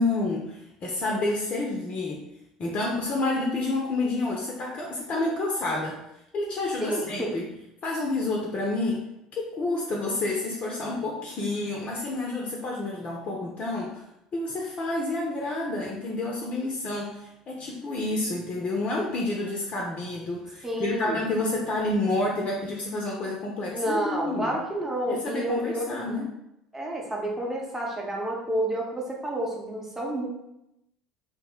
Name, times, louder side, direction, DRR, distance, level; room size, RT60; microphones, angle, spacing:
voice 1, 0.0-2.2 2.6-6.0 6.3-7.5 7.8-9.0 9.3-14.0 14.3-24.6 25.1-26.3, left 2 dB, 35° left, -2 dB, 0.5 m, -29 dB
voice 2, 6.8-7.3 20.6-21.2 23.7-26.0 26.7-30.3, right 1 dB, 10° right, -2 dB, 0.8 m, -29 dB
2.6 x 2.1 x 3.6 m, 0.86 s
figure-of-eight pair, 65°, 3 cm